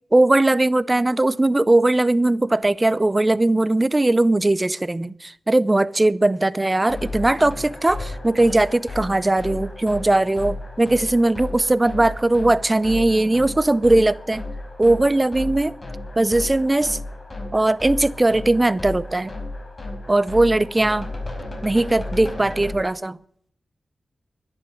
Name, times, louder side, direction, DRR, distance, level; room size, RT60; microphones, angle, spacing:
voice 1, 0.1-14.4 14.8-15.8 16.2-17.0 17.5-19.3 20.1-21.1 21.6-23.2, right 2 dB, 25° right, 0.7 m, -19 dB
sound 1, 6.9-22.7, left 2 dB, 35° left, 4.9 m, -34 dB
12.0 x 10.5 x 9.3 m
cardioid pair, 65°, 0 cm